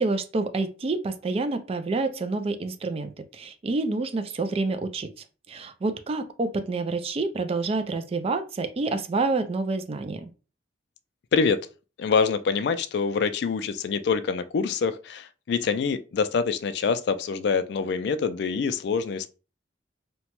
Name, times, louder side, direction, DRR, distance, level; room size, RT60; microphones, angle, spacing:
voice 1, 0.0-5.1 5.5-10.3, right 3 dB, 30° right, 0.3 m, -28 dB
voice 2, 12.0-19.3, left 5 dB, 65° left, 0.3 m, -25 dB
2.9 x 2.1 x 2.9 m
head